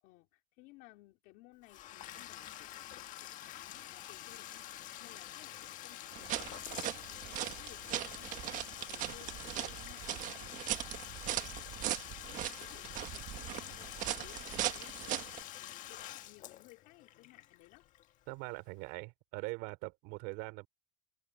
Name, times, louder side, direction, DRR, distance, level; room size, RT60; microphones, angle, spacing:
voice 1, 0.0-11.1 11.3-15.3 15.6-17.8, left 21 dB, 75° left, 3.5 m, -60 dB
Bathtub (filling or washing), 1.6-18.4, left 13 dB, 50° left, 1.7 m, -47 dB
sound 1, 6.1-15.4, right 13 dB, 50° right, 1.6 m, -39 dB
voice 2, 18.3-20.7, right 25 dB, 75° right, 3.6 m, -42 dB
cardioid pair, 145°, 17 cm